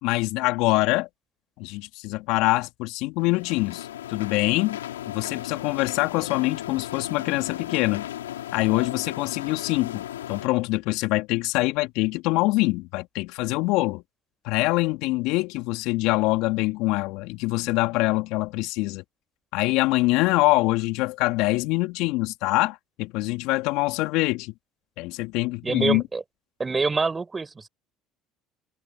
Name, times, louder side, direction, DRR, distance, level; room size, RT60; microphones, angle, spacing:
voice 1, 0.0-1.1 1.6-4.8 5.1-8.1 8.5-14.0 14.4-19.0 19.5-24.5 25.0-26.0, left 21 dB, 70° left, 3.3 m, -24 dB
sound 1, 3.2-10.5, left 12 dB, 90° left, 3.2 m, -36 dB
voice 2, 25.6-26.2 26.6-27.7, right 4 dB, 25° right, 6.0 m, -26 dB
hypercardioid pair, 70°, 0 cm